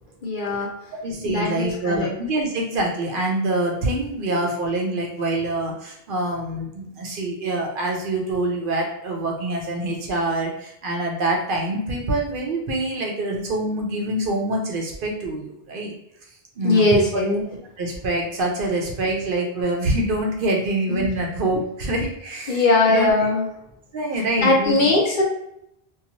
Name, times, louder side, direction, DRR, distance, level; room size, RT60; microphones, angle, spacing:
voice 1, 0.2-0.7 1.2-2.1 4.3-4.4 16.6-17.4 20.9-21.1 22.5-23.5 24.4-25.2, left 2 dB, 60° left, -1 dB, 0.6 m, -20 dB
voice 2, 1.0-15.9 16.6-17.2 17.8-23.1 23.9-24.9, right 1 dB, 60° right, 0 dB, 0.7 m, -25 dB
2.9 x 2.3 x 2.5 m, 0.78 s
omnidirectional pair, 1.1 m